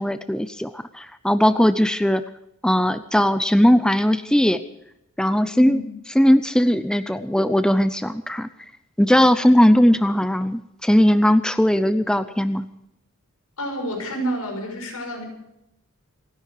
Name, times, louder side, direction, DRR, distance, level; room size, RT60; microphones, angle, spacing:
voice 1, 0.0-2.2 2.6-4.6 5.2-5.8 6.2-8.5 9.0-12.7, equal, 5° left, 11 dB, 0.5 m, -18 dB
voice 2, 13.6-15.2, right 1 dB, 80° left, 2 dB, 6.2 m, -29 dB
28.0 x 10.5 x 4.8 m, 0.82 s
head